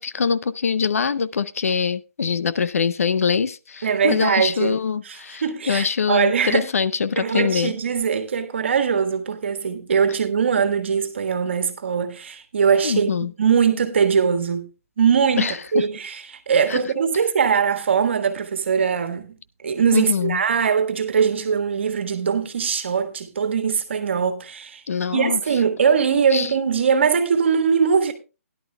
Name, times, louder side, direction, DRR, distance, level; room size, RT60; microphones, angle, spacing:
voice 1, 0.0-7.7 12.8-13.3 15.4-15.8 16.7-16.8 19.9-20.4 24.9-25.4 26.3-26.5, left 6 dB, 75° left, 0.7 m, -23 dB
voice 2, 3.8-4.8 5.0-6.7 7.2-13.1 13.4-14.7 15.0-19.4 19.6-24.8 25.1-28.1, right 6 dB, 50° right, 1.5 m, -21 dB
17.5 x 11.0 x 2.2 m
hypercardioid pair, 180°, 8 cm